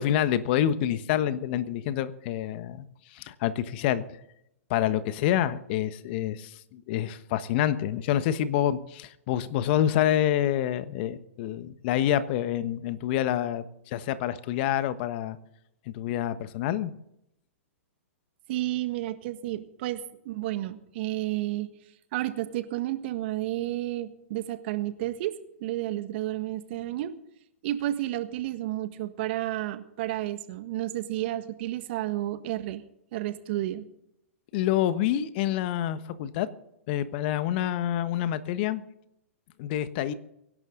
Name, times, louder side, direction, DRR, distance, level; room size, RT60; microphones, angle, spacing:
voice 1, 0.0-2.8 3.1-4.0 4.7-15.4 15.9-16.9 34.5-36.5 36.9-38.8 39.6-40.1, left 11 dB, 50° left, 13 dB, 1.2 m, -27 dB
voice 2, 18.5-21.7 22.1-25.3 25.6-27.1 27.6-32.8 33.1-33.8, right 15 dB, 50° right, 10 dB, 1.6 m, -31 dB
24.5 x 11.5 x 3.9 m, 0.79 s
hypercardioid pair, 115°, 7 cm